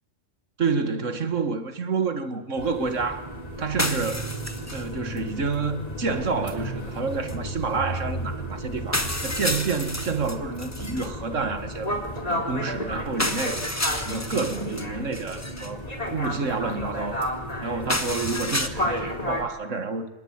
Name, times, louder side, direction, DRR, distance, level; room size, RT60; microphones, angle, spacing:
voice 1, 0.6-4.4 4.7-11.9 12.3-13.6 14.1-17.3 17.6-20.1, right 4 dB, 75° right, 2.3 m, -29 dB
sound 1, 2.6-19.4, equal, 30° left, 3.7 m, -33 dB
sound 2, 3.8-4.9 5.2-5.3 7.3-7.4 8.3-8.4 8.9-11.1 13.2-14.9 15.1-15.7 17.9-18.7, left 1 dB, 15° left, 1.6 m, -30 dB
26.5 x 20.0 x 9.6 m
omnidirectional pair, 1.3 m